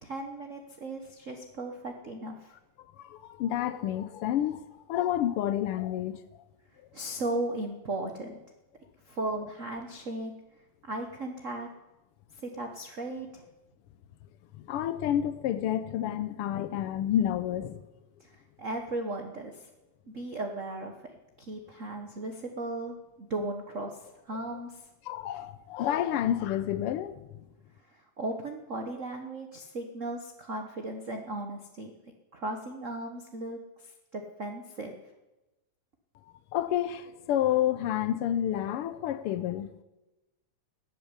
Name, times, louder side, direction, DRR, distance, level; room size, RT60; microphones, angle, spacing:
voice 1, 0.0-2.5 6.9-8.4 9.0-10.3 10.8-11.7 12.3-13.4 18.2-19.7 20.1-20.9 21.4-23.9 24.3-24.8 27.9-31.9 32.3-35.0, right 2 dB, 80° right, 0.6 m, -36 dB
voice 2, 2.9-6.2 14.6-17.8 25.0-27.3 36.5-39.7, left 11 dB, 90° left, 1.2 m, -29 dB
14.0 x 8.7 x 9.7 m
omnidirectional pair, 3.3 m